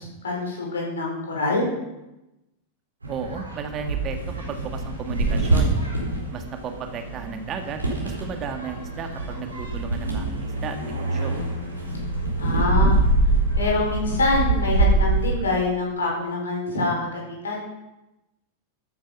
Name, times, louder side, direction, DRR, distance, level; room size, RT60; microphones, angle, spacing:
voice 1, 0.0-1.7 12.4-13.0 13.6-17.6, left 2 dB, 70° left, -1 dB, 5.1 m, -25 dB
sound 1, 3.0-15.2, right 2 dB, 80° right, 4.0 m, -24 dB
voice 2, 3.1-5.8 6.3-11.4, right 6 dB, 30° right, 6 dB, 1.7 m, -34 dB
13.5 x 9.9 x 5.7 m, 0.97 s
figure-of-eight pair, 90°, 0 cm